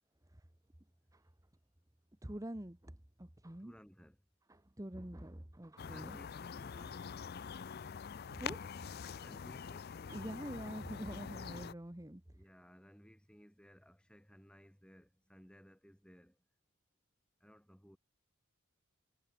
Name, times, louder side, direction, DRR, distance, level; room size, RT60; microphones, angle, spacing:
voice 1, 2.2-2.9 3.2-3.7 4.5-6.2 8.3-8.7 10.1-12.2, right 1 dB, 15° right, 1.1 m, -45 dB
voice 2, 3.5-4.2 5.8-7.2 9.2-10.0 12.3-16.4 17.4-18.0, equal, 5° left, 3.4 m, -59 dB
sound 1, 5.8-11.7, left 6 dB, 45° left, 0.4 m, -45 dB
head